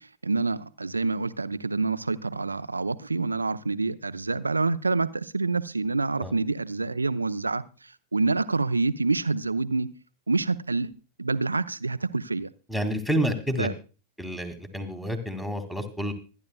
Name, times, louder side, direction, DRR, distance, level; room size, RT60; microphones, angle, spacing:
voice 1, 0.0-9.9 10.3-12.5 13.6-13.7, right 3 dB, 80° right, 0.6 m, -27 dB
voice 2, 12.7-13.7 14.2-16.1, equal, 5° left, 2.2 m, -29 dB
25.5 x 10.5 x 2.2 m
figure-of-eight pair, 90°, 0 cm